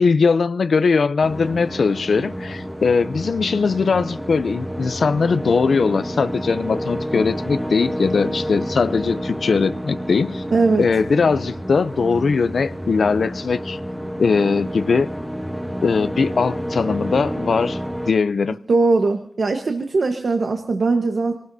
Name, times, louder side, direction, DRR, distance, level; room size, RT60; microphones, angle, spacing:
voice 1, 0.0-10.4 10.8-13.8 14.2-15.1 15.8-17.8 18.1-18.6, left 5 dB, 65° left, 0.5 m, -20 dB
sound 1, 1.2-18.1, equal, ahead, 1.0 m, -29 dB
voice 2, 10.5-10.9 18.7-21.4, right 3 dB, 55° right, 1.2 m, -20 dB
26.5 x 18.5 x 2.7 m
wide cardioid pair, 145°, 0 cm